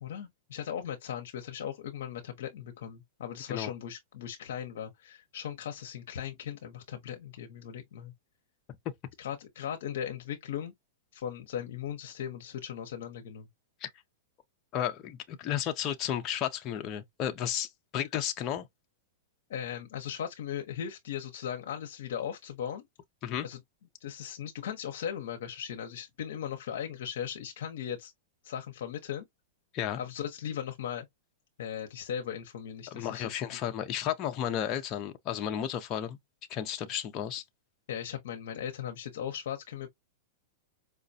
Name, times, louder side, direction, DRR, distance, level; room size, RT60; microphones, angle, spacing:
voice 1, 0.0-8.1 9.2-10.7 11.1-13.5 19.5-22.8 23.4-23.6 24.0-28.1 28.4-29.3 30.0-31.1 31.6-33.6 37.9-39.9, left 9 dB, 70° left, 0.7 m, -38 dB
voice 2, 14.7-18.7 23.2-23.5 29.7-30.0 32.9-36.2 36.5-37.4, left 10 dB, 35° left, 0.5 m, -33 dB
4.8 x 2.1 x 2.6 m
hypercardioid pair, 135°, 0 cm